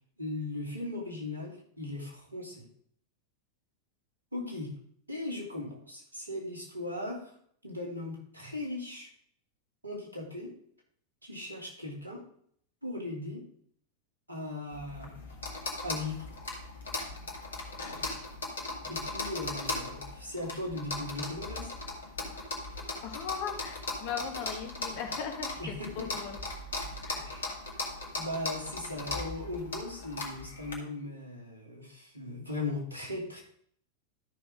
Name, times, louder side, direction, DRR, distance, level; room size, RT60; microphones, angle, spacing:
voice 1, 0.2-2.7 4.3-4.7 5.1-7.3 7.6-9.1 9.8-10.5 11.2-12.2 12.8-13.4 14.3-15.1 15.8-16.3 18.9-21.7 25.6-26.1 27.1-27.4 28.2-33.4, left 2 dB, 80° right, -2 dB, 3.0 m, -38 dB
sound 1, 14.7-30.7, left 3 dB, 65° left, 2.0 m, -38 dB
voice 2, 23.0-26.4 27.0-27.3, left 7 dB, 45° left, 4 dB, 1.6 m, -38 dB
13.0 x 5.9 x 3.7 m, 0.62 s
figure-of-eight pair, 90°, 0 cm